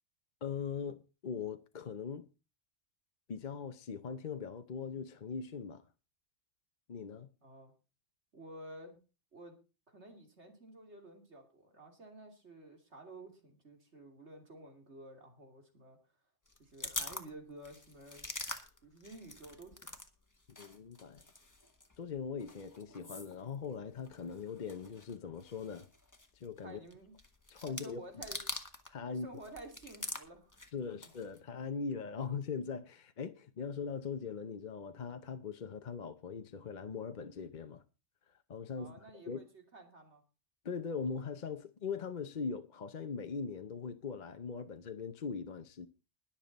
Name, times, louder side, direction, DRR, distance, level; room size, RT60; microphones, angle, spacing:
voice 1, 0.4-2.3 3.3-5.8 6.9-7.3 20.6-21.2 22.0-25.9 26.3-26.8 27.5-28.2 28.9-29.3 30.7-37.8 38.5-39.0 39.2-39.4 40.6-45.9, left 5 dB, 45° left, 0.8 m, -40 dB
voice 2, 7.4-7.7 8.3-9.0 9.3-9.5 9.9-16.0 16.6-18.3 18.8-19.9 26.6-27.2 27.7-28.4 29.1-30.5 38.7-40.2, right 1 dB, 60° right, 3.1 m, -52 dB
sound 1, 16.5-20.1 20.3-29.0 29.3-31.4, left 2 dB, 15° left, 1.4 m, -45 dB
21.0 x 7.3 x 4.1 m
omnidirectional pair, 1.3 m